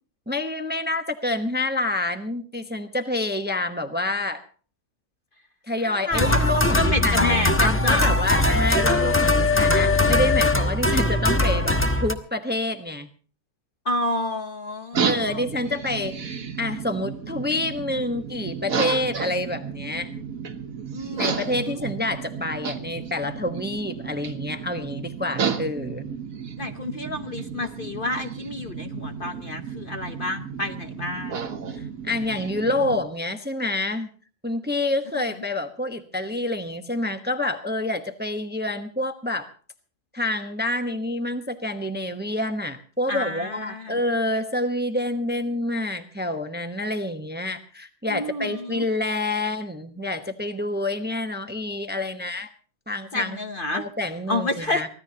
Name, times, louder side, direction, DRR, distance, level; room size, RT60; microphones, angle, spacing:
voice 1, 0.3-4.4 5.7-13.1 15.0-20.1 21.2-26.1 31.8-34.1 34.4-39.5 40.1-52.5 52.9-53.4 53.7-54.9, left 2 dB, 10° right, 7 dB, 1.0 m, -28 dB
voice 2, 5.8-8.1 8.9-9.0 13.8-15.4 20.9-21.8 26.6-31.4 35.2-35.3 43.1-44.0 48.1-48.8 53.1-53.8 54.3-54.8, left 1 dB, 40° left, 7 dB, 1.0 m, -29 dB
sound 1, 6.1-12.1, left 2 dB, 10° left, 1.0 m, -21 dB
sound 2, 14.9-33.0, right 6 dB, 75° right, 1.6 m, -32 dB
24.0 x 16.5 x 2.9 m, 0.40 s
omnidirectional pair, 1.5 m